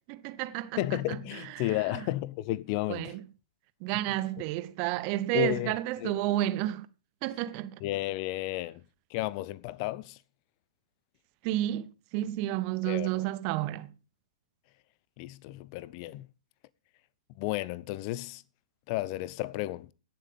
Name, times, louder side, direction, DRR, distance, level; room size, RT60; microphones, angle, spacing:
voice 1, 0.1-0.8 1.1-1.2 1.6-1.7 2.9-3.2 3.8-6.9 7.2-7.8 11.4-13.9, right 15 dB, 35° right, 0.8 m, -31 dB
voice 2, 0.7-3.2 5.3-5.7 6.0-6.1 7.8-8.8 9.1-10.2 12.8-13.2 15.2-16.3 17.4-18.4 18.9-19.9, left 16 dB, 40° left, 0.6 m, -32 dB
16.5 x 7.4 x 5.2 m
figure-of-eight pair, 115°, 4 cm